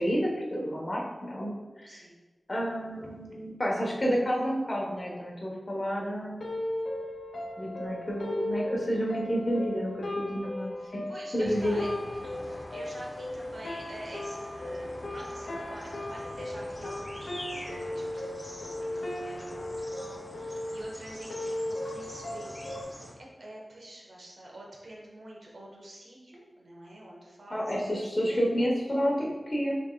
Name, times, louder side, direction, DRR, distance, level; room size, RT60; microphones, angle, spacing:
voice 1, 0.0-2.0 2.5-6.4 7.6-11.0 11.3-11.8 27.5-29.8, equal, 40° left, -2 dB, 1.0 m, -30 dB
voice 2, 1.9-2.2 10.8-22.6 22.9-29.0, right 1 dB, 75° right, -3 dB, 1.1 m, -47 dB
sound 1, 6.4-22.8, left 1 dB, 80° left, 0.6 m, -37 dB
sound 2, 11.4-23.2, left 1 dB, 25° left, 0.6 m, -45 dB
6.5 x 3.4 x 2.3 m, 1.2 s
wide cardioid pair, 80°, 0 cm